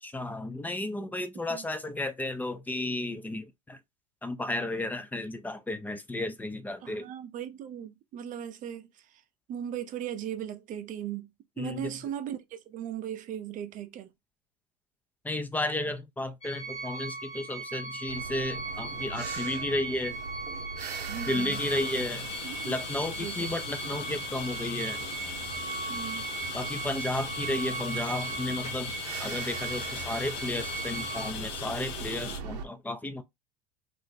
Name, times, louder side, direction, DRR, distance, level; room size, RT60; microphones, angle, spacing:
voice 1, 0.0-3.8 4.2-7.1 11.6-11.9 15.2-20.2 21.3-22.3 22.7-25.0 26.5-33.2, left 2 dB, 10° left, 0.4 m, -33 dB
voice 2, 6.8-8.9 9.5-11.3 11.6-14.1 21.1-21.6 22.4-22.7 23.2-23.5 25.9-26.3, right 10 dB, 40° right, 0.6 m, -37 dB
sound 1, 16.4-31.3, right 3 dB, 30° left, 0.9 m, -38 dB
sound 2, 18.1-32.6, right 5 dB, 85° right, 0.6 m, -42 dB
sound 3, 21.5-32.4, left 8 dB, 60° left, 0.7 m, -40 dB
2.5 x 2.1 x 4.0 m
hypercardioid pair, 100°, 20 cm